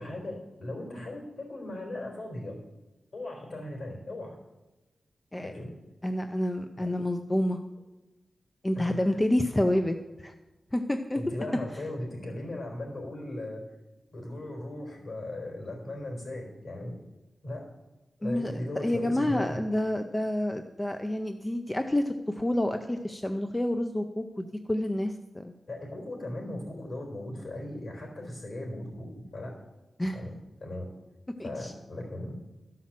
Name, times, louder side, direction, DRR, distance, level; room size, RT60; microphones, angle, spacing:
voice 1, 0.0-2.6 3.1-4.4 5.4-5.7 6.8-6.9 8.8-9.2 11.2-13.6 14.1-17.0 17.4-17.7 18.2-19.6 25.7-29.6 30.1-30.8 31.4-32.3, left 1 dB, 55° left, 0 dB, 4.1 m, -38 dB
voice 2, 6.0-7.6 8.6-10.3 10.7-11.2 18.2-25.5 30.0-30.2 31.4-31.7, left 1 dB, 10° left, 6 dB, 0.5 m, -29 dB
13.0 x 5.8 x 7.3 m, 1.1 s
wide cardioid pair, 175°, 0 cm